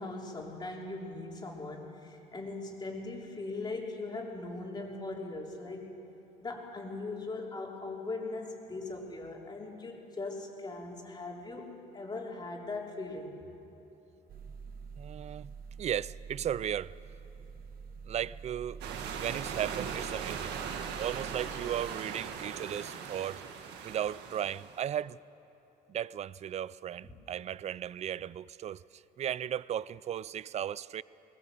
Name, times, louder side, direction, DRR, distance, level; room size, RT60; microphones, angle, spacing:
voice 1, 0.0-5.9 6.4-13.4 20.5-20.8 21.6-21.7 27.0-27.1, left 3 dB, 25° left, 3.3 m, -40 dB
sound 1, 14.3-21.9, right 5 dB, 60° right, 1.2 m, -47 dB
voice 2, 15.0-15.5 15.8-17.0 18.1-18.8 19.1-20.6 21.0-23.4 23.8-25.2 25.9-31.0, right 10 dB, 40° right, 0.4 m, -36 dB
sound 2, 18.8-24.9, right 7 dB, 85° right, 1.8 m, -39 dB
20.5 x 19.0 x 7.7 m
cardioid pair, 110°, 17 cm